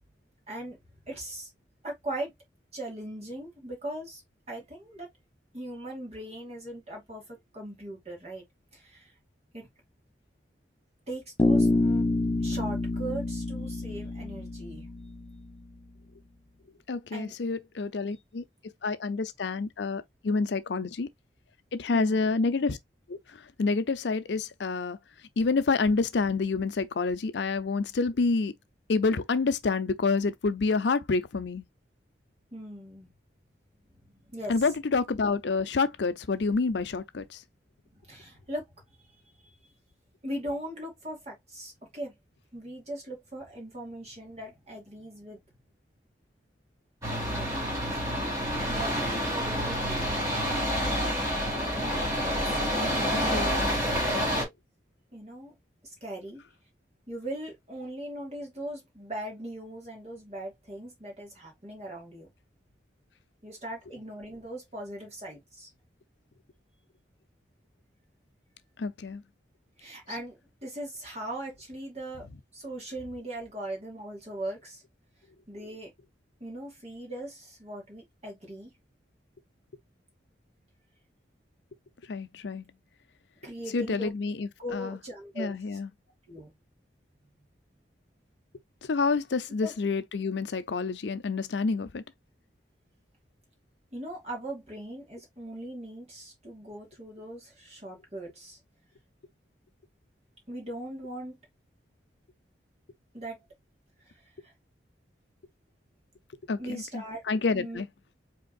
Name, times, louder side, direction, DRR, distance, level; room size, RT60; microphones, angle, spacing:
voice 1, 0.5-0.8 1.1-1.5 1.8-2.3 2.7-4.2 4.5-5.1 5.5-8.4 8.7-9.1 9.5-9.7 11.1-11.7 12.4-14.9 17.1-17.4 21.9-22.3 32.5-33.1 34.3-34.6 37.9-38.6 40.2-42.1 42.5-45.4 47.3-47.5 48.7-50.1 52.4-53.4 53.7-54.5 55.1-55.5 56.0-56.4 57.1-62.3 63.4-65.7 69.8-72.3 72.5-74.8 75.5-75.9 76.4-78.7 83.4-84.1 84.6-85.6 86.3-86.5 89.6-89.7 93.9-98.6 100.5-101.3 103.1-103.4 106.6-107.3 107.5-107.8, right 1 dB, 35° right, 2.5 m, -39 dB
Bass guitar, 11.4-15.5, left 2 dB, 20° left, 0.5 m, -27 dB
voice 2, 16.9-18.4 18.8-21.1 21.7-22.8 23.1-23.2 23.6-25.0 25.4-28.5 28.9-31.6 34.5-37.4 53.0-53.6 54.1-54.3 68.8-69.2 82.1-82.6 83.7-85.0 85.4-85.9 88.9-92.0 106.5-107.9, left 4 dB, 70° left, 0.5 m, -28 dB
sound 1, 47.0-54.4, equal, 15° right, 2.2 m, -28 dB
5.2 x 3.6 x 2.4 m
head